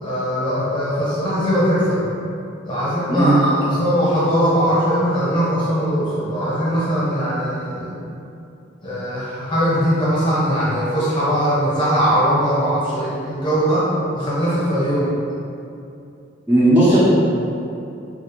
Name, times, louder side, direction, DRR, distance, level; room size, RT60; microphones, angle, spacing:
voice 1, 0.0-2.0 2.6-8.0 8.8-13.9 14.1-15.1, equal, 25° left, -10 dB, 0.7 m, -20 dB
voice 2, 16.5-17.0, right 1 dB, 10° right, -13 dB, 0.4 m, -14 dB
2.4 x 2.0 x 2.9 m, 2.6 s
head